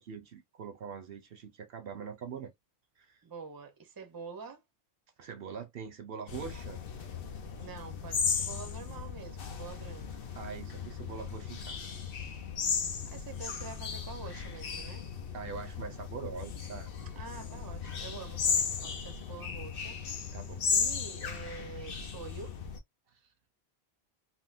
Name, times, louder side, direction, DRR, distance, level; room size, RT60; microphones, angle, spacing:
voice 1, 0.0-2.5 3.0-3.2 5.2-6.8 10.3-12.1 15.3-16.9 20.3-20.7 23.1-23.2, right 6 dB, 70° right, 0.8 m, -43 dB
voice 2, 3.2-4.6 7.6-10.4 13.1-15.1 17.2-20.0 20.7-22.5, right 5 dB, 25° right, 0.6 m, -46 dB
sound 1, 6.3-22.8, left 6 dB, 65° left, 0.8 m, -36 dB
3.7 x 2.1 x 2.4 m
omnidirectional pair, 1.1 m